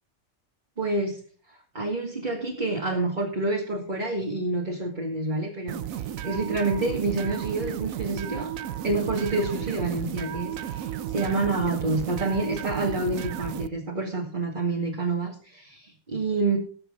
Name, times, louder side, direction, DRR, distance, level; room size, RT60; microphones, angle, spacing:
voice 1, 0.8-1.2 1.7-8.5 8.8-16.6, right 2 dB, 35° right, -1 dB, 2.3 m, -28 dB
sound 1, 5.7-13.7, right 11 dB, 75° right, 1.1 m, -33 dB
19.5 x 7.8 x 3.8 m, 0.41 s
omnidirectional pair, 1.4 m